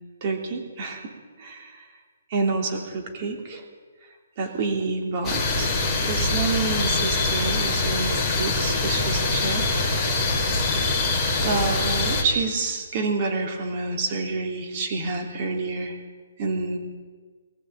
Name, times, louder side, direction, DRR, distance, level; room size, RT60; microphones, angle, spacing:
voice 1, 0.2-1.1 1.4-1.8 2.3-3.6 4.4-9.9 11.4-16.0 16.4-16.8, right 3 dB, 30° right, 4 dB, 3.1 m, -28 dB
sound 1, 5.2-12.2, left 3 dB, 5° left, 3.2 m, -24 dB
22.5 x 14.5 x 8.9 m, 1.5 s
hypercardioid pair, 170°, 0 cm